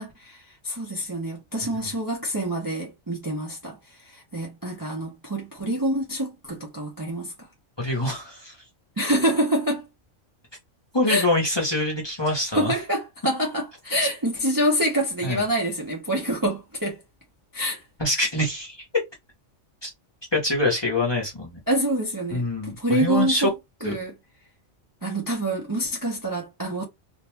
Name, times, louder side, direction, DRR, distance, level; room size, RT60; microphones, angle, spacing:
voice 1, 0.0-7.5 9.0-9.9 11.1-11.3 12.5-17.0 17.5-17.8 21.7-23.5 23.8-24.1 25.0-26.8, right 1 dB, 25° right, 0.5 m, -26 dB
voice 2, 7.8-8.6 10.9-12.7 14.0-14.1 15.2-15.4 18.0-18.9 19.8-19.9 20.3-21.6 22.3-23.5 23.8-23.9, left 1 dB, 25° left, 0.8 m, -25 dB
2.5 x 2.2 x 3.1 m
omnidirectional pair, 1.3 m